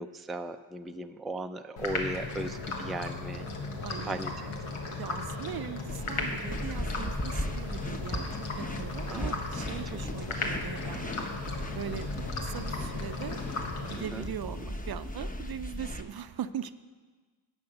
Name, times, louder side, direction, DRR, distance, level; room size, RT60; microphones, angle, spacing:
voice 1, 0.0-3.5 4.0-4.8 9.1-9.3 14.1-14.3, right 1 dB, ahead, 7 dB, 0.4 m, -37 dB
sound 1, 1.8-14.5, left 3 dB, 85° left, 1.4 m, -36 dB
voice 2, 3.8-4.2 4.9-8.3 8.6-11.3 11.7-13.4 13.8-16.7, right 9 dB, 50° right, 13 dB, 0.6 m, -40 dB
sound 2, 5.9-16.0, left 1 dB, 15° left, 0.9 m, -37 dB
10.5 x 5.7 x 7.9 m, 1.4 s
cardioid pair, 50°, 49 cm